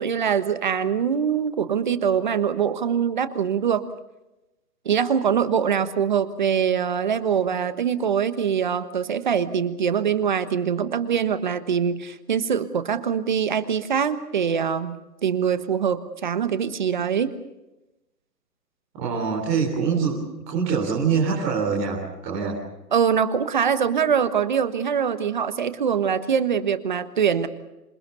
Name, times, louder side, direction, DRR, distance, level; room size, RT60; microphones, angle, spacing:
voice 1, 0.0-3.8 4.8-15.0 15.2-17.3 22.9-27.5, right 7 dB, 30° right, 12 dB, 1.2 m, -23 dB
voice 2, 18.9-22.6, right 5 dB, 15° right, -4 dB, 3.7 m, -24 dB
27.5 x 21.5 x 6.9 m, 0.96 s
hypercardioid pair, 175°, 48 cm